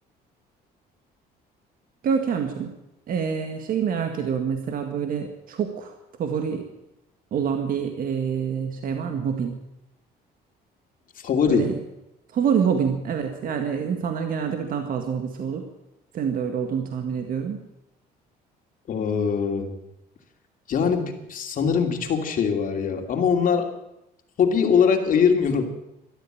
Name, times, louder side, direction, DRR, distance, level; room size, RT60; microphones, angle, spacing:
voice 1, 2.0-2.7 3.1-6.7 7.3-9.6 11.5-11.8 12.3-15.6 16.1-17.6, right 7 dB, 55° right, 5 dB, 1.8 m, -26 dB
voice 2, 11.2-11.7 18.9-19.7 20.7-23.7 24.4-25.6, left 6 dB, 55° left, 4 dB, 2.7 m, -22 dB
13.0 x 12.5 x 8.8 m, 0.88 s
cardioid pair, 110°, 17 cm